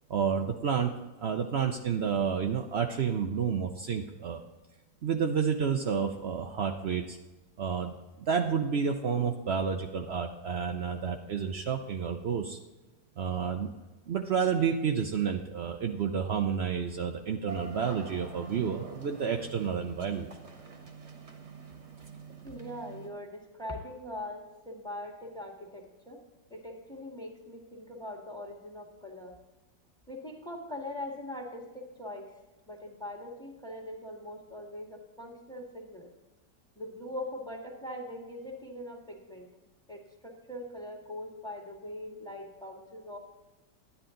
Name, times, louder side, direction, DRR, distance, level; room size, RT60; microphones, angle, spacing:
voice 1, 0.1-4.4 5.0-7.2 7.6-12.6 13.2-13.7 14.1-20.3, right 7 dB, 75° right, 4 dB, 0.5 m, -30 dB
sound 1, 17.5-23.1, right 5 dB, 40° right, 1.3 m, -46 dB
voice 2, 22.4-26.2 26.5-29.3 30.1-32.3 32.7-36.1 36.7-39.5 39.9-43.2, left 1 dB, ahead, 1 dB, 1.7 m, -41 dB
11.0 x 10.5 x 3.8 m, 1.1 s
omnidirectional pair, 1.9 m